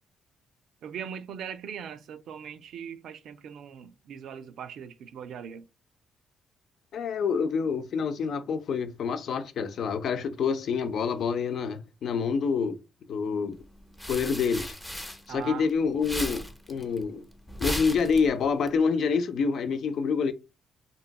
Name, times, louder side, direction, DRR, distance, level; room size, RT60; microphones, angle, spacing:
voice 1, 0.8-5.7 15.3-15.7, right 8 dB, 70° right, 0.3 m, -40 dB
voice 2, 6.9-12.8 13.1-13.6 14.1-14.8 15.3-17.2 17.6-20.3, left 5 dB, 65° left, 0.4 m, -27 dB
sound 1, 13.6-15.7 16.0-18.7, equal, 10° left, 0.5 m, -36 dB
3.0 x 2.6 x 2.2 m
cardioid pair, 90°, 0 cm